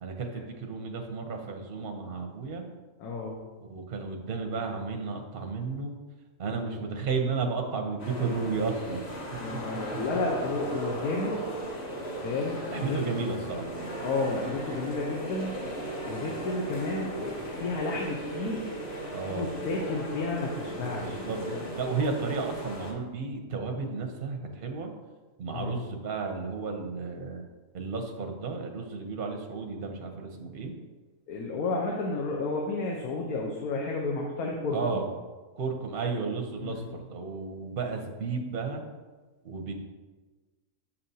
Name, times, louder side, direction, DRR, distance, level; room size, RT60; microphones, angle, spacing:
voice 1, 0.0-2.7 3.6-5.9 6.4-9.1 12.7-13.7 19.1-19.6 21.0-21.4 21.8-24.9 25.4-27.4 27.7-30.7 34.7-35.1 35.6-38.8 39.4-39.7, right 4 dB, 55° right, 3 dB, 0.6 m, -33 dB
voice 2, 3.0-3.4 9.4-11.4 12.2-13.0 14.0-15.6 16.0-18.6 19.3-21.6 25.5-25.8 31.3-35.0 36.6-36.8, left 3 dB, 90° left, -1 dB, 1.2 m, -32 dB
sound 1, 8.0-22.9, right 1 dB, 35° left, 0.9 m, -37 dB
7.1 x 5.5 x 2.7 m, 1.3 s
omnidirectional pair, 1.5 m